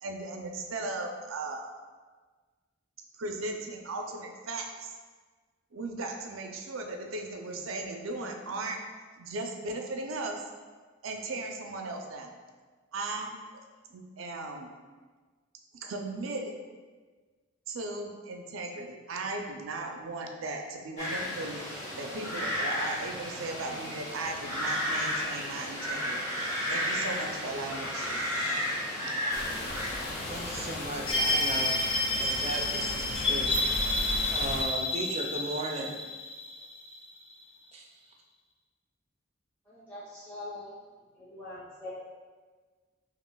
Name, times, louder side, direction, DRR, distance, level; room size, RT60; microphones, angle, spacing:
voice 1, 0.0-1.8 3.2-4.9 5.7-8.8 9.2-10.4 11.0-12.4 12.9-13.4 13.9-14.7 15.7-16.6 17.7-21.6 21.9-28.2, right 2 dB, 90° right, 3 dB, 0.5 m, -37 dB
sound 1, 21.0-30.8, left 1 dB, 35° left, 1.2 m, -33 dB
sound 2, 29.3-34.6, left 2 dB, 50° left, 0.4 m, -36 dB
voice 2, 30.3-31.8 32.1-33.5 34.3-36.0 37.7-37.9, right 2 dB, 30° right, 1 dB, 0.4 m, -36 dB
sound 3, 31.1-37.3, left 2 dB, 75° left, 0.8 m, -30 dB
voice 3, 39.7-40.7 41.2-41.9, left 2 dB, 10° left, -13 dB, 0.7 m, -43 dB
5.7 x 2.5 x 2.2 m, 1.4 s
head